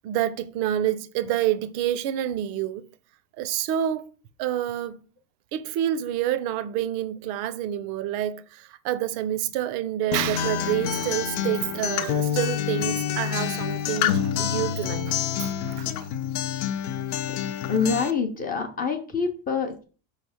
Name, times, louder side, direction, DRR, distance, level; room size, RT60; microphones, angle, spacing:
voice 1, 0.0-2.8 3.4-4.1 4.4-5.0 5.5-16.1, right 11 dB, 60° right, 0.7 m, -28 dB
Acoustic guitar, 10.1-18.1, left 9 dB, 80° left, 0.7 m, -27 dB
voice 2, 17.7-19.8, left 5 dB, 20° left, 0.5 m, -26 dB
5.8 x 3.3 x 5.6 m
cardioid pair, 175°, 42 cm